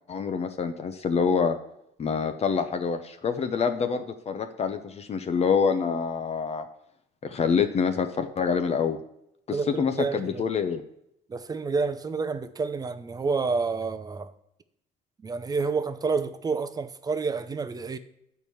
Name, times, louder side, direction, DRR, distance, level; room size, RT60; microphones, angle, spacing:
voice 1, 0.1-1.6 2.0-6.6 7.2-9.0 9.5-10.8, left 6 dB, 40° left, 0.8 m, -26 dB
voice 2, 9.5-10.4 11.3-14.3 15.2-18.0, right 4 dB, 20° right, 0.7 m, -29 dB
8.3 x 4.7 x 7.0 m
cardioid pair, 110°, 17 cm